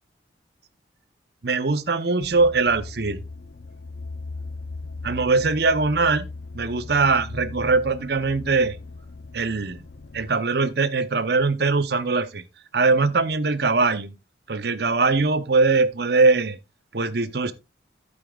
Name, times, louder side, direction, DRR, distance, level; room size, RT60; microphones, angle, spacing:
voice 1, 1.4-3.2 5.0-6.3 6.5-8.8 9.3-9.8 10.1-12.4 12.7-14.1 14.5-16.6 16.9-17.5, right 3 dB, 55° right, 0.8 m, -21 dB
sound 1, 2.2-10.3, left 3 dB, 55° left, 0.5 m, -38 dB
11.5 x 8.7 x 2.3 m
head